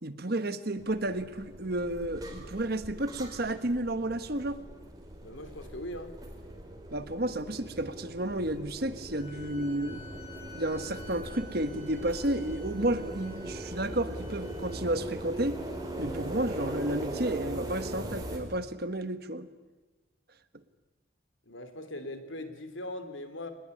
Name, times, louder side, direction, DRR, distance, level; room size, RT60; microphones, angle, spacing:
voice 1, 0.0-4.6 6.9-10.0 10.5-15.6 16.0-19.5, right 1 dB, 50° right, 11 dB, 1.4 m, -32 dB
sound 1, 0.8-18.4, right 1 dB, 20° right, 4.4 m, -40 dB
voice 2, 5.2-6.2 21.4-23.5, left 1 dB, 75° left, 9 dB, 3.3 m, -40 dB
sound 2, 9.1-14.8, left 3 dB, 30° left, 7.5 m, -51 dB
25.0 x 20.5 x 9.9 m, 1.2 s
head